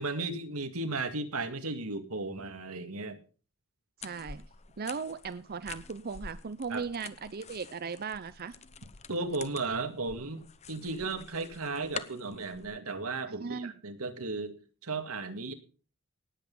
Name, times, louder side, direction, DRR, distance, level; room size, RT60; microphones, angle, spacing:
voice 1, 0.0-3.2 6.7-6.8 9.1-14.6 14.8-15.5, right 3 dB, 90° right, 8 dB, 2.0 m, -35 dB
sound 1, 4.0-12.6, left 5 dB, 30° left, 0.8 m, -47 dB
voice 2, 4.0-4.5 4.8-8.6 13.3-13.7, right 5 dB, 45° right, 13 dB, 0.6 m, -37 dB
19.0 x 8.2 x 5.4 m, 0.39 s
head